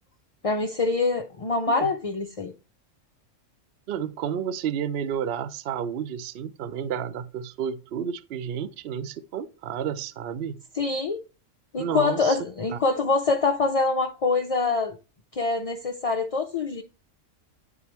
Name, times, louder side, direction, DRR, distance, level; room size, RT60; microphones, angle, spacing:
voice 1, 0.4-2.5 10.8-11.2 11.7-15.0 15.3-16.8, left 3 dB, 55° left, 0.4 m, -25 dB
voice 2, 3.9-10.6 11.8-12.4 12.7-12.8, right 8 dB, 60° right, 0.7 m, -31 dB
9.6 x 4.9 x 3.0 m
omnidirectional pair, 1.3 m